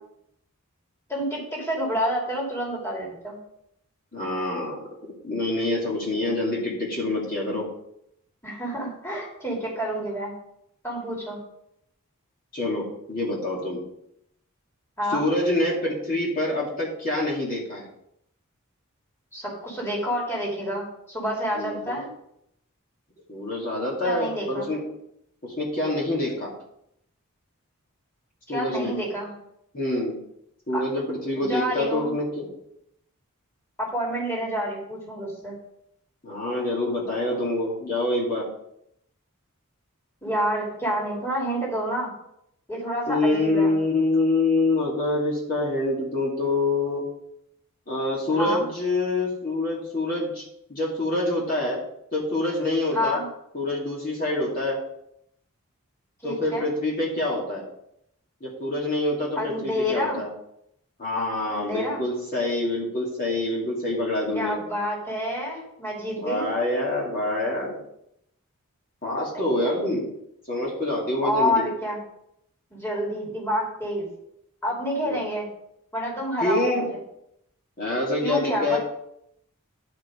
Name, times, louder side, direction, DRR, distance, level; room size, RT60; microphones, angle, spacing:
voice 1, 1.1-3.4 8.4-10.3 10.8-11.4 15.0-15.2 19.3-22.1 24.0-24.7 28.5-29.3 30.7-30.8 31.4-32.2 33.8-35.6 40.2-42.1 42.7-43.8 48.4-48.7 52.9-53.3 56.2-56.7 59.4-60.2 61.6-62.0 64.3-66.5 69.3-69.7 71.2-72.0 72.7-74.1 74.6-75.5 75.9-77.0 78.2-78.8, equal, 10° left, -4 dB, 2.7 m, -28 dB
voice 2, 4.1-4.8 5.2-7.7 12.5-13.8 15.1-17.9 21.5-22.0 23.3-24.8 25.4-26.5 28.5-28.9 29.7-30.2 30.7-32.5 36.2-38.5 43.1-47.0 47.9-50.4 50.7-51.8 52.1-53.2 53.5-54.8 56.2-57.7 58.4-60.3 61.0-64.6 66.2-67.8 69.0-70.1 70.5-71.6 75.0-75.2 76.4-76.9 77.8-78.8, left 2 dB, 40° left, -5 dB, 2.5 m, -26 dB
10.5 x 5.2 x 5.1 m, 0.76 s
head